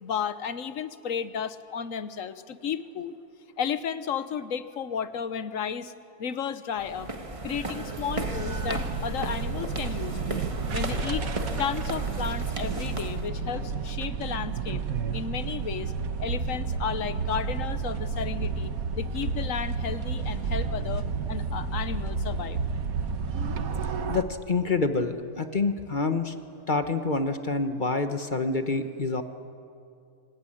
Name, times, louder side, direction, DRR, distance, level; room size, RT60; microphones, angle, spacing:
voice 1, 0.0-3.1 3.6-5.9 6.2-7.1 7.4-10.4 10.7-11.3 11.6-14.8 15.1-15.9 16.2-22.6, left 7 dB, 65° left, 13 dB, 1.3 m, -33 dB
sound 1, 6.8-13.3, right 2 dB, 20° right, 1.5 m, -35 dB
sound 2, 8.1-24.2, right 5 dB, 70° right, 1.6 m, -31 dB
voice 2, 24.1-26.3 26.7-29.2, left 3 dB, 35° left, 8 dB, 1.1 m, -27 dB
26.0 x 18.0 x 9.9 m, 2.4 s
omnidirectional pair, 1.6 m